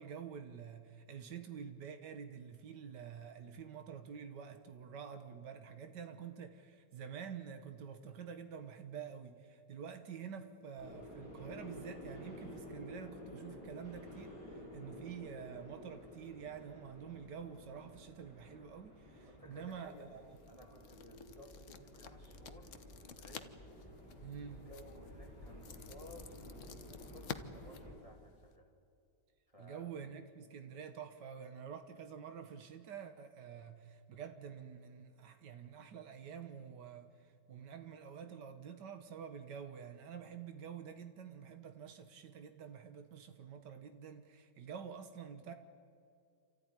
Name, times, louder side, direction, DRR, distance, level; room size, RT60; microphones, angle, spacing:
voice 1, 0.0-20.2 24.2-24.7 29.6-45.5, right 7 dB, 85° right, 1.9 m, -48 dB
sound 1, 10.8-27.9, left 1 dB, 30° left, 7.4 m, -52 dB
voice 2, 19.3-23.6 24.2-24.3 24.7-28.7 29.5-29.9, equal, 20° right, 2.4 m, -57 dB
sound 2, 19.5-28.6, left 7 dB, 50° left, 1.3 m, -52 dB
29.0 x 14.0 x 10.0 m
omnidirectional pair, 1.8 m